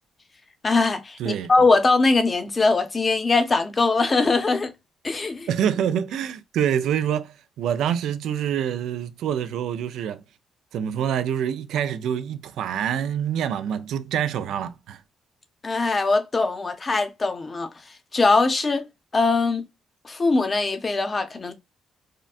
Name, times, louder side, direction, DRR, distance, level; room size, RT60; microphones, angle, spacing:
voice 1, 0.6-4.7 5.0-5.5 15.6-17.7 18.1-18.8 19.1-19.6 20.0-21.5, left 3 dB, 30° left, 0.6 m, -21 dB
voice 2, 1.2-1.5 5.5-10.2 10.7-15.0, right 9 dB, 80° right, 0.4 m, -26 dB
3.6 x 2.2 x 2.4 m
cardioid pair, 90°, 0 cm